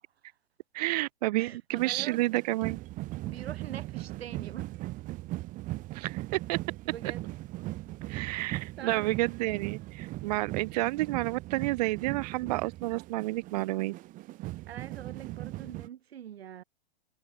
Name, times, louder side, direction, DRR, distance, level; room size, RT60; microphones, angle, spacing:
voice 1, 0.7-2.8 5.9-6.2 6.5-6.6 8.1-13.9, right 19 dB, 40° right, 0.6 m, -30 dB
voice 2, 1.4-2.4 3.2-4.7 6.8-7.2 8.8-9.1 14.7-16.6, right 10 dB, 85° right, 1.1 m, -44 dB
sound 1, 1.8-15.9, right 18 dB, 25° right, 1.4 m, -39 dB
hypercardioid pair, 145°, 30 cm